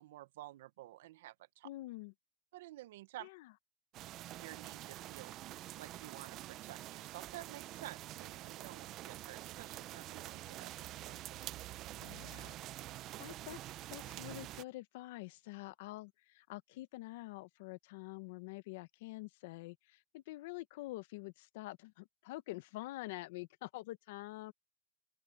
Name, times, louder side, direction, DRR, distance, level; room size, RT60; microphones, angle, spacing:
voice 1, 0.0-1.7 2.5-3.3 4.2-5.3 5.8-11.2, right 16 dB, 70° right, 1.0 m, -52 dB
voice 2, 1.6-2.1 3.2-3.5 12.0-12.6 13.2-24.5, left 19 dB, 60° left, 1.1 m, -47 dB
sound 1, 3.9-14.6, right 15 dB, 35° right, 0.6 m, -47 dB
open air
supercardioid pair, 150°, 0 cm